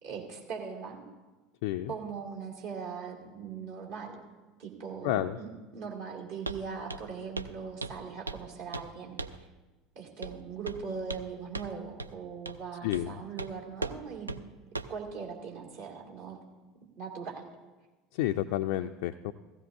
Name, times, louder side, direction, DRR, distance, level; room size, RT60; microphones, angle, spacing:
voice 1, 0.0-1.0 1.9-4.2 4.6-9.2 9.9-14.4 14.9-16.4 17.0-17.4, right 6 dB, 60° right, -2 dB, 2.4 m, -40 dB
voice 2, 1.6-1.9 5.0-5.4 12.8-13.1 18.1-19.3, left 13 dB, 60° left, 6 dB, 0.3 m, -30 dB
Walk footsteps, 6.5-6.6 6.9-7.1 7.4-7.5 7.8-8.5 8.7-8.9 9.2-9.4 10.2-10.4 10.7-11.3 11.5-11.7 12.0-12.1 12.5-12.6 12.9-13.1 13.4-13.5 13.8-14.0 14.3-14.4 14.8-15.0, right 2 dB, 85° right, 0.3 m, -37 dB
15.5 x 15.5 x 2.6 m, 1.2 s
figure-of-eight pair, 70°, 0 cm